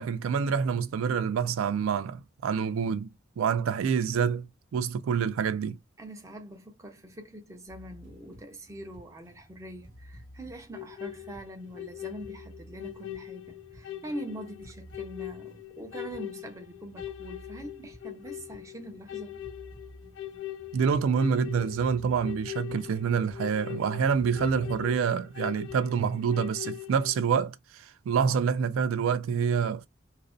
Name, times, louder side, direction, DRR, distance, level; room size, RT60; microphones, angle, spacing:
voice 1, 0.0-4.5 4.7-5.8 20.7-29.9, right 6 dB, 90° right, 0.3 m, -27 dB
voice 2, 6.0-19.4, right 1 dB, 15° right, 0.5 m, -43 dB
sound 1, 7.7-25.8, right 1 dB, 45° right, 0.9 m, -53 dB
sound 2, 10.7-27.2, left 14 dB, 75° left, 0.4 m, -41 dB
2.5 x 2.1 x 2.4 m
head